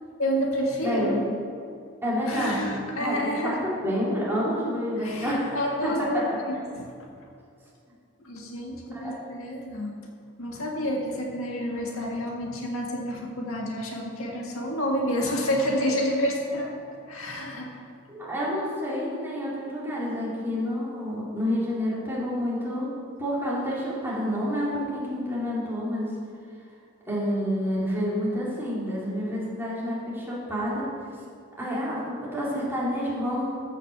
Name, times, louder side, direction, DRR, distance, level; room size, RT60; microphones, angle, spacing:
voice 1, 0.2-1.2 2.3-3.6 5.0-6.2 6.5-6.8 8.2-9.9 10.4-17.7, equal, 65° left, 0 dB, 1.8 m, -29 dB
voice 2, 0.8-1.4 2.0-2.6 3.0-6.1 8.9-9.1 18.1-22.9 23.2-26.1 27.1-30.9 31.6-33.6, equal, 10° right, -8 dB, 3.5 m, -29 dB
14.0 x 6.5 x 6.9 m, 2.4 s
head